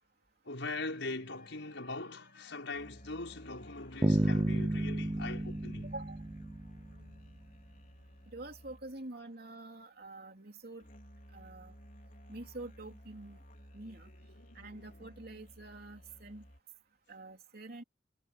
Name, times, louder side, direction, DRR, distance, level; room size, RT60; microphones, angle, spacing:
voice 1, 0.4-5.9 13.9-14.8, left 3 dB, 85° left, 5.6 m, -42 dB
sound 1, 0.6-16.6, equal, 45° left, 3.9 m, -56 dB
sound 2, 4.0-7.0, right 1 dB, 20° right, 0.6 m, -31 dB
voice 2, 5.8-6.2 8.3-10.8 11.3-11.7 12.3-13.4 13.7-14.1 14.5-16.4 17.1-17.8, right 2 dB, 55° right, 3.3 m, -46 dB
head